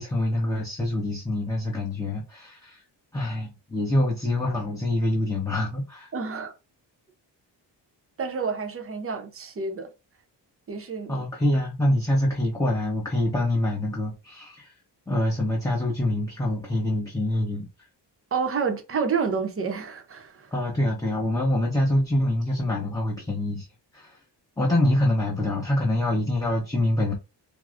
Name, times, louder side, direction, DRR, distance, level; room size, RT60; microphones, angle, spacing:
voice 1, 0.0-2.8 3.1-6.1 11.1-14.7 15.1-17.7 20.5-23.7 23.9-24.2 24.6-27.1, left 1 dB, 10° left, 0.7 m, -25 dB
voice 2, 6.1-6.5 8.2-9.9 10.7-11.2 18.3-20.5, right 5 dB, 30° right, 0.6 m, -29 dB
4.6 x 2.0 x 2.4 m
wide cardioid pair, 125°, 43 cm